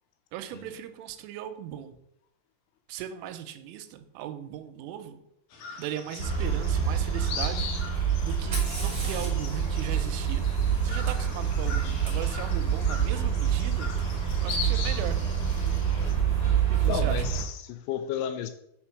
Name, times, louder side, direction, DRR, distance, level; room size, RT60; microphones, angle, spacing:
voice 1, 0.3-1.9 2.9-5.2 5.8-7.7 8.2-10.5 10.8-13.9 14.4-15.2 16.7-17.2, right 10 dB, 85° right, 3.2 m, -38 dB
sound 1, 5.5-16.1, left 5 dB, 65° left, 2.5 m, -40 dB
sound 2, 6.2-17.4, right 8 dB, 10° left, 2.0 m, -27 dB
Fire, 8.3-12.1 14.0-14.1 14.9-15.3, right 2 dB, 35° right, 2.3 m, -42 dB
voice 2, 16.9-18.5, left 9 dB, 85° left, 2.8 m, -32 dB
7.1 x 4.4 x 5.9 m
omnidirectional pair, 5.7 m